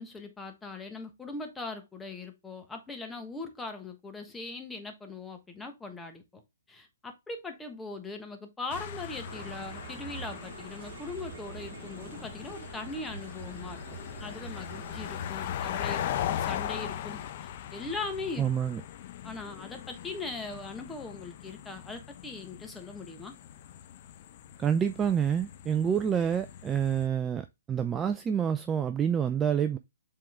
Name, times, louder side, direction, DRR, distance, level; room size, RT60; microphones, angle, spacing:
voice 1, 0.0-6.4 6.7-13.8 14.2-18.5 19.2-23.3, left 3 dB, 10° left, 1.3 m, -40 dB
sound 1, 8.7-27.1, left 10 dB, 45° left, 0.7 m, -39 dB
sound 2, 9.2-15.3, right 7 dB, 55° right, 1.5 m, -45 dB
voice 2, 18.4-18.8 24.6-29.8, right 8 dB, 15° right, 0.4 m, -28 dB
7.4 x 3.8 x 3.6 m
hypercardioid pair, 135°, 0 cm